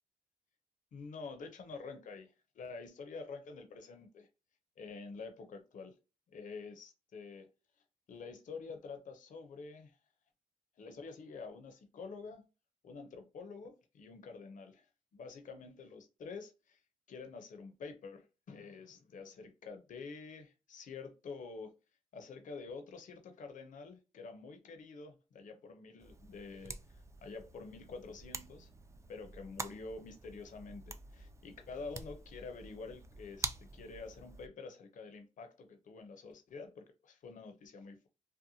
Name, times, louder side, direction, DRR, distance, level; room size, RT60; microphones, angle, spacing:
voice 1, 0.9-4.3 4.8-6.0 6.3-7.5 8.1-10.0 10.8-12.5 12.8-14.9 15.1-16.8 17.1-21.7 22.1-28.7 29.1-38.1, left 4 dB, 65° left, 0.5 m, -48 dB
sound 1, 26.0-34.5, right 3 dB, 20° right, 0.3 m, -47 dB
2.8 x 2.1 x 2.6 m
cardioid pair, 60°, 15 cm